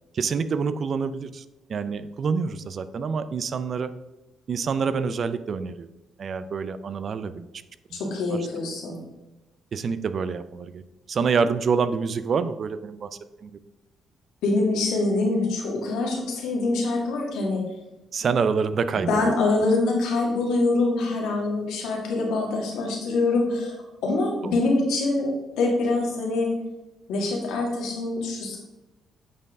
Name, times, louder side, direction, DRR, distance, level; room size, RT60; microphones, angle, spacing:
voice 1, 0.1-1.4 1.7-3.9 4.5-5.9 6.2-7.4 7.9-8.0 8.3-8.4 9.7-10.8 11.1-13.1 13.4-13.5 18.1-19.2 24.4-24.5, right 5 dB, 50° right, 13 dB, 0.4 m, -26 dB
voice 2, 7.9-9.0 14.4-17.6 18.9-25.3 25.6-26.5 27.1-28.6, left 2 dB, 90° left, -1 dB, 1.9 m, -24 dB
8.5 x 4.5 x 3.6 m, 1.0 s
cardioid pair, 90°, 0 cm